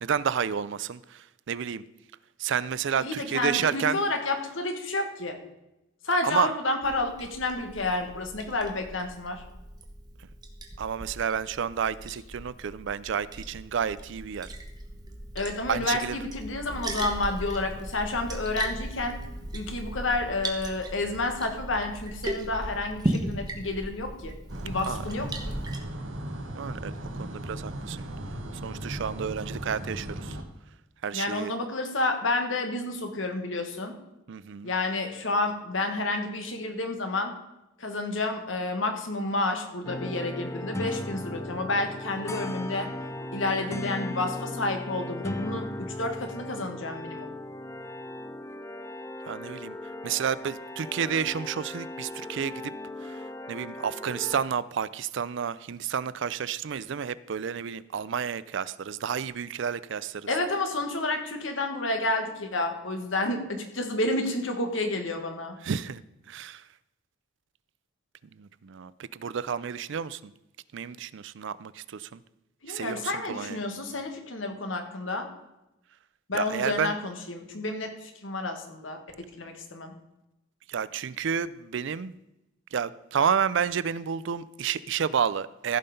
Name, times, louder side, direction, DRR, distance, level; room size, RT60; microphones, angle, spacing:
voice 1, 0.0-1.8 2.4-4.0 6.2-6.5 10.8-14.5 15.7-16.2 24.9-25.0 26.5-26.9 27.2-28.0 28.6-30.4 31.0-31.5 34.3-34.7 49.3-49.8 50.0-52.7 53.0-60.3 65.6-66.0 66.3-66.6 68.4-70.3 70.7-72.2 72.7-73.6 76.3-76.9 80.7-82.1 82.7-85.8, right 7 dB, 65° right, 18 dB, 0.4 m, -30 dB
voice 2, 3.0-5.4 6.0-9.4 15.3-19.2 19.5-24.3 24.6-25.5 31.1-33.9 34.6-37.3 37.8-42.9 43.3-47.3 60.3-65.6 72.6-75.3 76.3-79.9, left 2 dB, 75° left, 5 dB, 1.6 m, -30 dB
Liquid, 6.8-25.8, right 1 dB, 20° right, 1.2 m, -37 dB
sound 1, 24.5-30.4, right 1 dB, 85° right, 1.3 m, -37 dB
sound 2, 39.9-54.4, left 1 dB, 15° left, 0.5 m, -37 dB
15.0 x 5.7 x 5.3 m, 0.93 s
head